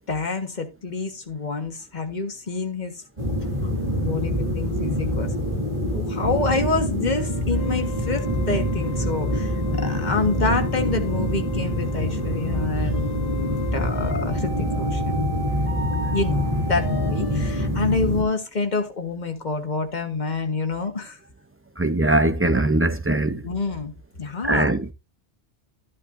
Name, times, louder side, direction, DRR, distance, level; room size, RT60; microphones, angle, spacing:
voice 1, 0.1-3.0 3.6-3.7 4.0-5.3 5.9-15.2 16.1-21.2 23.3-23.9 24.2-24.7, left 4 dB, 40° left, 1.6 m, -27 dB
sound 1, 3.2-18.2, equal, 35° right, 3.5 m, -25 dB
sound 2, 7.1-17.7, left 1 dB, 55° left, 1.5 m, -37 dB
voice 2, 21.8-23.4 24.4-24.9, right 2 dB, 15° right, 0.5 m, -21 dB
13.0 x 8.3 x 2.6 m
omnidirectional pair, 1.2 m